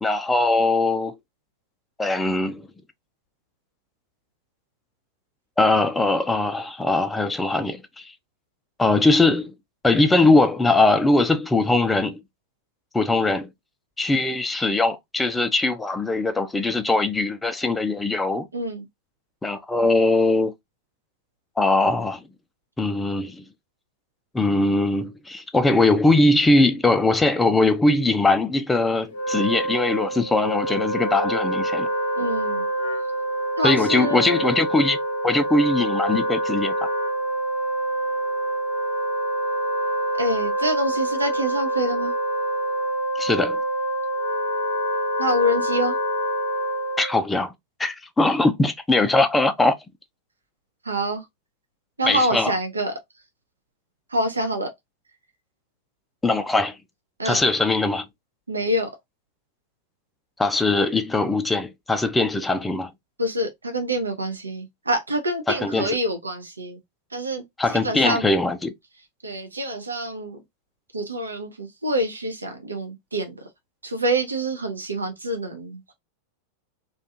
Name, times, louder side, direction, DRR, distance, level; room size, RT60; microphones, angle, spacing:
voice 1, 0.0-1.2 2.0-2.7 5.6-8.1 8.8-9.5 9.8-12.2 12.9-13.5 14.0-18.4 19.4-20.5 21.6-22.2 22.8-23.4 24.3-31.9 33.6-35.0 35.2-36.9 43.2-43.6 47.0-47.5 47.8-49.7 52.1-52.5 56.2-56.8 57.2-58.0 60.4-62.9 65.5-66.0 67.6-68.7, left 2 dB, 10° left, 0.4 m, -21 dB
voice 2, 18.5-18.9 32.2-32.7 33.6-34.5 40.1-42.1 45.2-46.0 50.8-51.2 52.0-52.9 54.1-54.7 57.2-57.4 58.5-58.9 63.2-66.8 67.1-68.2 69.2-70.4 70.9-73.3 73.8-75.9, right 1 dB, 80° right, 0.5 m, -26 dB
Wind instrument woodwind instrument, 29.1-47.2, right 1 dB, 60° left, 0.7 m, -26 dB
2.4 x 2.3 x 2.7 m
figure-of-eight pair, 90°, 0 cm